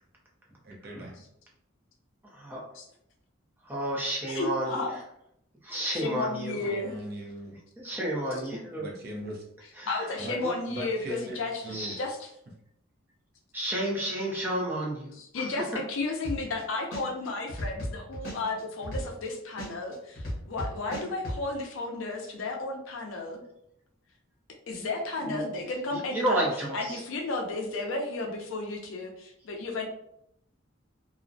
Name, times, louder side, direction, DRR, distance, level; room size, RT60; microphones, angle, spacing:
voice 1, 0.6-1.2 6.6-7.6 8.8-9.4 10.2-10.4 10.7-11.4 11.6-11.9, right 1 dB, 50° right, -2 dB, 0.6 m, -39 dB
voice 2, 2.3-2.6 3.6-4.8 5.6-6.6 7.8-8.9 9.8-10.1 10.4-10.5 11.7-12.0 13.5-15.5 25.2-25.4 26.1-27.0, right 1 dB, 10° right, -3 dB, 0.5 m, -31 dB
voice 3, 4.3-4.9 5.7-6.9 9.9-11.6 11.9-12.3 15.1-23.4 24.7-26.5 26.7-29.9, left 3 dB, 70° left, 2 dB, 0.4 m, -33 dB
sound 1, 16.2-16.6 16.9-19.3 19.6-21.4, equal, 45° left, 0.8 m, -34 dB
2.4 x 2.0 x 2.5 m, 0.77 s
head